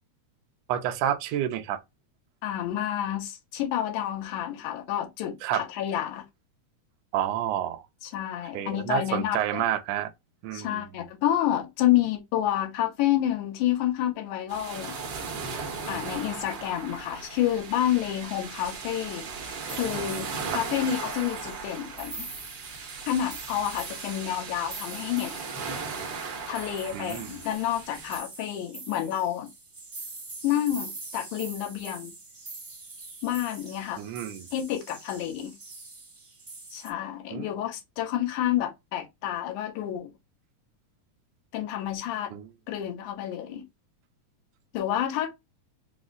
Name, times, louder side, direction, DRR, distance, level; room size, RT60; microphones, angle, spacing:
voice 1, 0.7-1.8 5.4-5.6 7.1-7.8 8.5-10.1 10.4-11.0 20.5-20.6 26.9-27.4 34.0-34.5 37.3-37.5 42.3-42.5, right 11 dB, 85° right, 1.5 m, -29 dB
voice 2, 2.4-6.2 8.0-9.7 10.5-15.0 15.9-22.3 23.1-25.4 26.5-29.5 30.4-32.1 33.2-34.0 34.5-35.5 36.7-40.1 41.5-42.3 42.7-43.6 44.7-45.3, left 11 dB, 80° left, 2.3 m, -29 dB
sound 1, 14.5-28.2, right 5 dB, 65° right, 1.2 m, -37 dB
sound 2, 18.5-36.9, right 3 dB, 35° right, 0.8 m, -44 dB
5.3 x 2.0 x 3.8 m
omnidirectional pair, 3.7 m